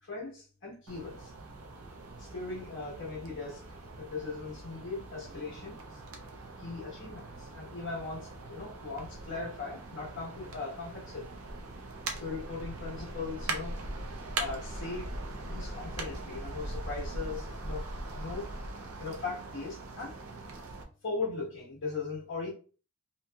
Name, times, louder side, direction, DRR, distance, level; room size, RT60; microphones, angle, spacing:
voice 1, 0.0-1.3 2.2-6.0 6.6-11.3 12.2-13.8 14.3-18.5 19.0-20.2 21.0-22.5, left 4 dB, 60° left, 1.0 m, -39 dB
sound 1, 0.9-20.8, right 2 dB, 70° right, 0.5 m, -41 dB
2.8 x 2.6 x 2.2 m
head